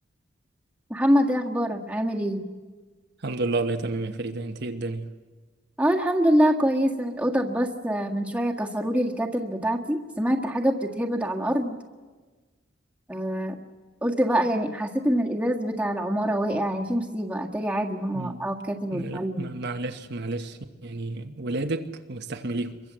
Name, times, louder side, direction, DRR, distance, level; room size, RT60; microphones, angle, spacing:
voice 1, 0.9-2.5 5.8-11.8 13.1-13.6 14.0-19.5, equal, 5° right, 1.7 m, -25 dB
voice 2, 3.2-5.1 18.1-18.4 18.9-22.8, right 2 dB, 60° right, 1.2 m, -31 dB
26.5 x 23.0 x 7.6 m
head